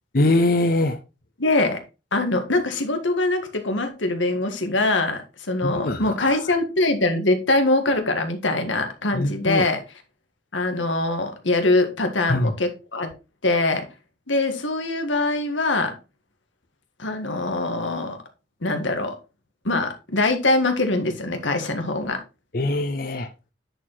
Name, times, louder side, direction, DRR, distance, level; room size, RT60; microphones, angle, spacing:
voice 1, 0.1-1.0 5.6-6.4 9.1-9.7 12.3-12.5 22.5-23.3, left 2 dB, 50° left, 0.7 m, -22 dB
voice 2, 1.4-1.8 2.1-9.8 10.5-13.1 13.4-13.9 14.3-15.9 17.0-18.2 18.6-19.1 19.6-22.2, left 2 dB, 90° left, 1.8 m, -23 dB
10.0 x 4.7 x 4.0 m
head